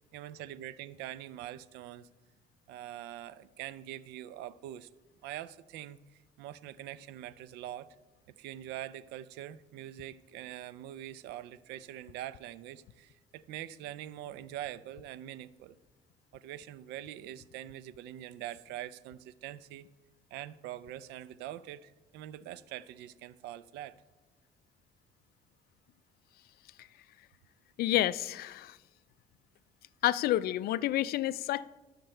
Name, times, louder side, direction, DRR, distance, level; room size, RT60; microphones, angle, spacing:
voice 1, 0.1-2.1 2.7-4.9 5.2-8.0 8.3-15.8 16.3-19.9 20.3-24.0, right 12 dB, 90° right, 17 dB, 0.4 m, -44 dB
voice 2, 27.8-28.8 30.0-31.7, left 14 dB, 65° left, 18 dB, 0.4 m, -29 dB
12.0 x 6.5 x 4.4 m, 1.1 s
cardioid pair, 110°, 17 cm